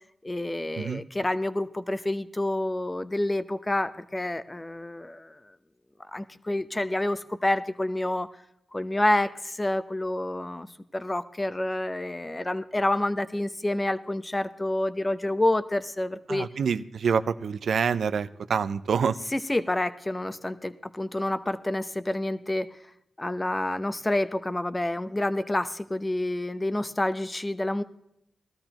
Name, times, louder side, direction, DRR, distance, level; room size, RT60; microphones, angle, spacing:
voice 1, 0.2-5.4 6.1-8.3 8.7-10.7 10.9-16.5 19.3-22.7 23.2-27.8, left 1 dB, 20° left, 12 dB, 0.7 m, -28 dB
voice 2, 16.3-19.2, right 6 dB, 80° right, 12 dB, 0.5 m, -26 dB
18.5 x 13.0 x 3.0 m, 0.78 s
cardioid pair, 65°, 0 cm